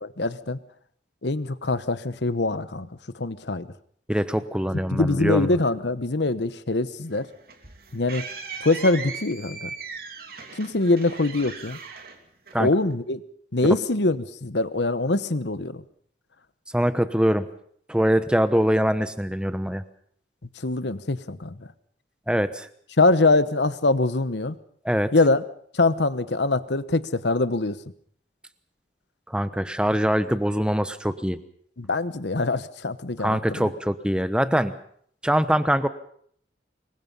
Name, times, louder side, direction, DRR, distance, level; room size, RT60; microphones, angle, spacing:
voice 1, 0.0-0.6 1.2-2.9 3.2-3.7 4.9-7.3 7.9-8.2 8.6-9.7 10.5-11.8 12.6-13.2 13.5-15.8 20.6-21.6 23.0-24.5 25.1-25.4 25.7-27.8 31.8-33.7, left 2 dB, 75° left, 14 dB, 1.1 m, -23 dB
voice 2, 4.1-5.6 12.5-12.7 13.6-13.7 16.7-17.5 17.9-19.8 22.3-22.7 24.8-25.1 29.3-31.4 33.2-34.8 35.2-35.9, equal, 5° right, 11 dB, 1.0 m, -23 dB
sound 1, 7.1-12.9, right 5 dB, 55° right, 3.0 m, -38 dB
26.5 x 22.0 x 5.5 m, 0.63 s
head